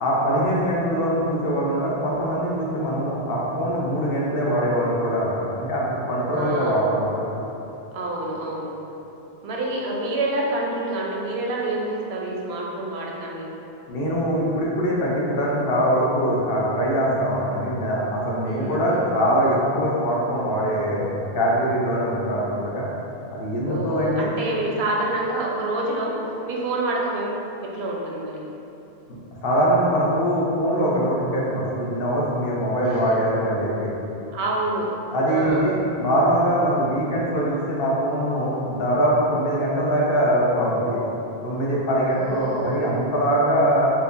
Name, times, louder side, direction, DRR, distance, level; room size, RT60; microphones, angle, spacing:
voice 1, 0.0-7.4 13.9-21.1 21.3-22.9 23.3-24.3 29.4-33.9 35.1-35.7 36.0-41.0 41.4-43.9, equal, 65° left, -4 dB, 0.8 m, -22 dB
voice 2, 6.3-6.9 7.9-8.7 9.4-13.5 18.4-19.1 23.7-26.1 26.5-28.4 32.8-33.2 34.3-34.9 35.3-35.8 42.1-42.9, right 2 dB, 80° right, -2 dB, 0.8 m, -27 dB
4.3 x 2.2 x 2.5 m, 2.9 s
omnidirectional pair, 1.1 m